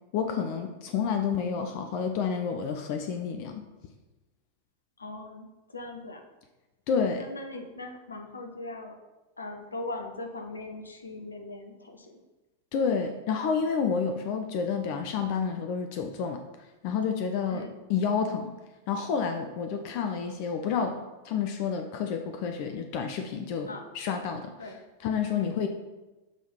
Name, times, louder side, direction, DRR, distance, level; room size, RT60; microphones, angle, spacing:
voice 1, 0.1-3.7 6.9-7.3 12.7-16.4 16.8-18.5 18.9-25.7, left 6 dB, 45° left, 5 dB, 0.5 m, -29 dB
voice 2, 5.0-5.5 5.7-6.2 7.2-8.9 9.4-12.2 17.5-17.7 23.7-23.9 24.6-24.8 25.3-25.6, left 2 dB, 75° left, 3 dB, 0.8 m, -39 dB
7.1 x 3.7 x 4.4 m, 1.1 s
figure-of-eight pair, 90°, 0 cm